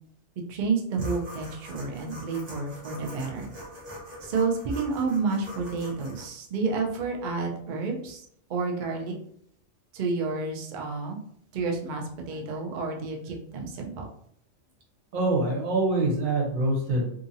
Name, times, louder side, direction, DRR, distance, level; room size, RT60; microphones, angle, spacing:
voice 1, 0.5-3.5 4.2-8.2 8.5-9.2 9.9-11.2 11.5-14.0, right 4 dB, 55° right, 0 dB, 0.5 m, -30 dB
sound 1, 0.9-6.2, equal, 35° right, 0.9 m, -44 dB
voice 2, 15.1-17.1, right 2 dB, 85° right, -1 dB, 1.3 m, -25 dB
2.8 x 2.5 x 2.6 m, 0.67 s
omnidirectional pair, 1.4 m